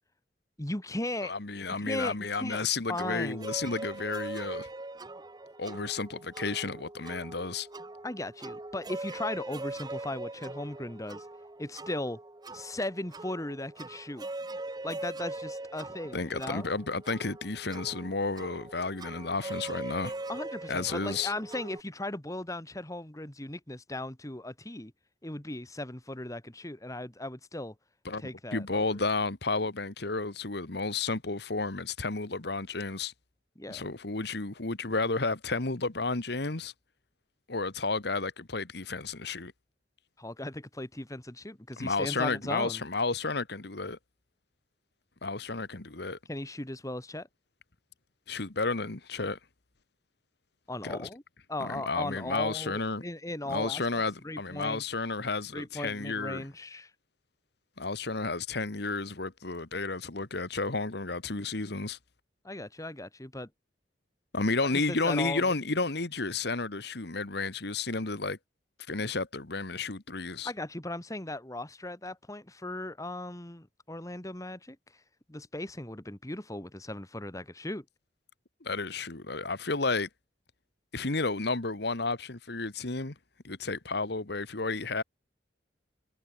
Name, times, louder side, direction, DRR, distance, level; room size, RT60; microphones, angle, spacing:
voice 1, 0.6-1.3 1.8-3.4 8.0-11.3 11.6-12.2 12.5-14.3 14.8-16.7 20.3-24.9 25.2-27.7 28.2-28.8 33.6-33.9 40.2-42.8 46.3-47.3 50.7-51.2 51.5-54.8 55.5-56.9 62.4-63.5 64.6-65.5 70.4-74.8 75.3-77.8, left 1 dB, 20° left, 1.9 m, -37 dB
voice 2, 1.2-4.7 5.6-7.7 16.1-20.1 20.7-21.3 28.0-28.2 28.5-33.1 33.7-36.7 37.5-39.5 41.8-44.0 45.2-46.2 48.3-49.4 50.8-51.1 51.6-53.0 53.4-56.5 57.8-62.0 64.3-68.4 68.9-70.5 78.6-80.1 80.9-83.1 83.4-85.0, left 3 dB, 60° left, 1.6 m, -32 dB
sound 1, 2.9-21.8, right 2 dB, 20° right, 0.9 m, -41 dB
head